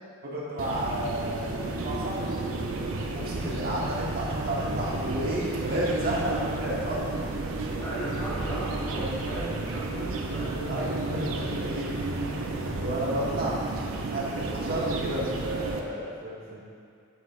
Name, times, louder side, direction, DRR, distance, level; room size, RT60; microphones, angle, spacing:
voice 1, 0.2-2.3 3.1-7.1 9.0-9.5 10.0-10.1 10.7-13.6 14.1-16.6, right 1 dB, 45° right, -5 dB, 1.2 m, -32 dB
sound 1, 0.6-15.8, right 2 dB, 70° right, 0.6 m, -32 dB
voice 2, 7.8-10.6, right 1 dB, 15° left, -10 dB, 0.9 m, -37 dB
7.1 x 6.4 x 2.4 m, 2.3 s
head